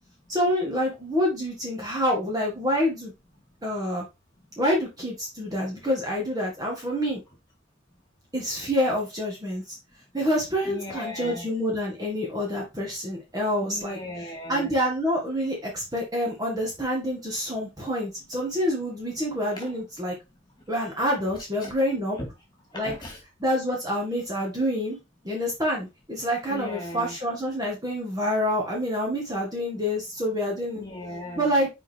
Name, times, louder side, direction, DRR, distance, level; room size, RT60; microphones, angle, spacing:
voice 1, 0.3-3.1 3.6-4.0 4.6-7.2 8.3-9.8 10.1-14.0 14.5-20.1 20.7-22.2 22.7-22.9 23.4-25.0 25.2-30.8 31.3-31.7, equal, 20° right, 1.7 m, -27 dB
voice 2, 10.6-11.5 13.6-14.7 19.5-19.7 21.6-21.7 22.7-23.2 26.5-27.2 30.7-31.7, left 1 dB, 20° left, 2.5 m, -37 dB
6.1 x 4.4 x 3.6 m
head